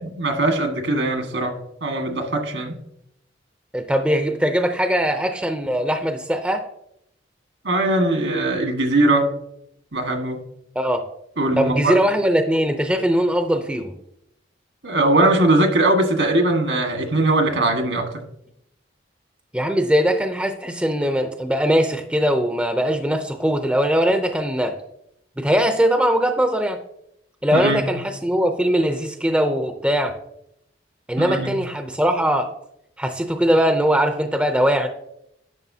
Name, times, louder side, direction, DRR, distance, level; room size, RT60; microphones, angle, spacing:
voice 1, 0.0-2.8 7.6-9.3 9.9-10.4 11.4-11.9 14.8-18.0 27.5-27.8 31.2-31.5, right 2 dB, 75° right, 3 dB, 1.6 m, -20 dB
voice 2, 3.7-6.6 10.8-11.0 11.6-13.9 19.5-24.8 25.4-26.8 27.4-30.1 31.1-32.5 33.0-34.9, equal, 5° right, 6 dB, 0.5 m, -20 dB
11.0 x 6.6 x 2.8 m, 0.76 s
head